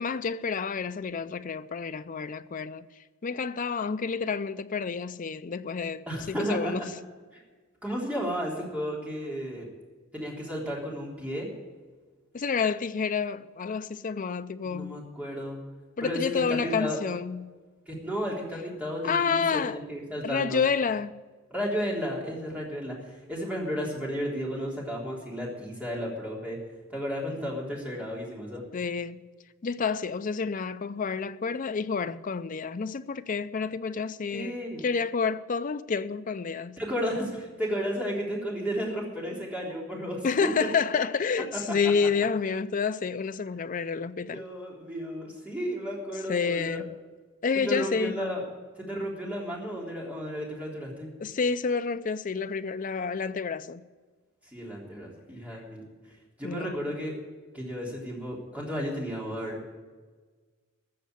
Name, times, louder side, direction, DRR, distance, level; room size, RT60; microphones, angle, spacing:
voice 1, 0.0-2.9 3.2-6.8 12.3-15.0 16.0-17.5 19.0-19.8 20.2-21.2 28.7-29.3 29.6-36.8 40.2-44.4 46.3-47.0 47.4-48.2 51.2-53.8 56.4-56.8, left 5 dB, 40° left, 0.5 m, -29 dB
voice 2, 6.1-6.9 7.3-7.4 7.8-9.7 10.1-11.5 14.6-15.6 16.0-17.0 17.9-20.6 21.5-26.6 26.9-28.6 34.3-34.8 36.8-40.2 40.6-40.7 44.3-46.8 47.7-48.5 48.8-51.1 54.5-55.8 56.4-57.1 57.5-59.6, equal, 5° right, 3.5 m, -33 dB
14.5 x 6.7 x 9.6 m
head